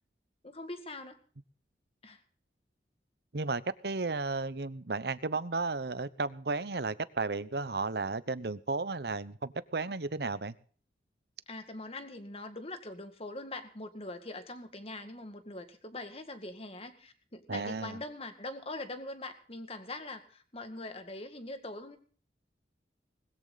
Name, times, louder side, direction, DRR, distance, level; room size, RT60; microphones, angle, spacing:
voice 1, 0.4-1.2 2.0-2.2 11.5-22.0, left 2 dB, 35° left, 9 dB, 2.0 m, -42 dB
voice 2, 3.3-10.5 17.5-18.0, right 3 dB, 65° right, 16 dB, 0.9 m, -34 dB
20.5 x 14.0 x 4.1 m, 0.43 s
head